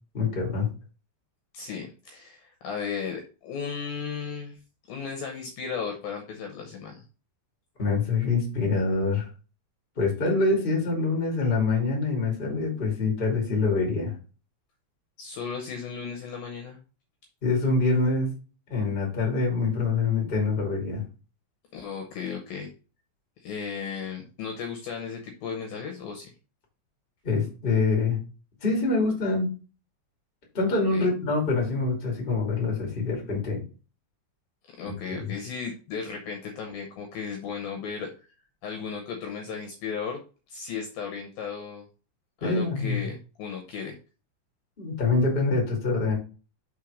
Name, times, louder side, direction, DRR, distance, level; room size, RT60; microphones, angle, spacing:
voice 1, 0.1-0.7 7.8-9.2 9.9-14.1 17.4-18.3 18.7-21.0 27.2-28.2 28.6-29.5 30.5-33.6 42.4-43.1 44.8-46.2, left 3 dB, 20° left, -1 dB, 1.6 m, -25 dB
voice 2, 1.5-4.6 4.9-7.0 15.2-16.8 21.7-22.7 23.4-26.3 30.9-31.1 34.8-38.1 38.6-40.2 40.5-41.9 42.4-44.0, left 6 dB, 70° left, 3 dB, 2.4 m, -35 dB
5.8 x 4.6 x 5.0 m, 0.34 s
omnidirectional pair, 5.1 m